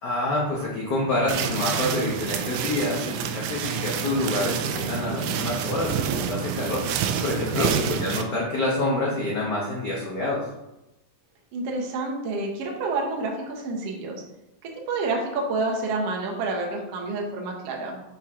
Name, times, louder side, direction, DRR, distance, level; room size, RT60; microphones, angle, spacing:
voice 1, 0.0-6.8 7.2-10.4, left 2 dB, 80° left, -5 dB, 0.9 m, -27 dB
sound 1, 1.3-8.2, right 7 dB, 80° right, 1.9 m, -28 dB
voice 2, 11.5-14.2 14.6-18.0, right 3 dB, 65° right, -1 dB, 1.6 m, -29 dB
6.0 x 4.6 x 3.6 m, 0.93 s
omnidirectional pair, 3.6 m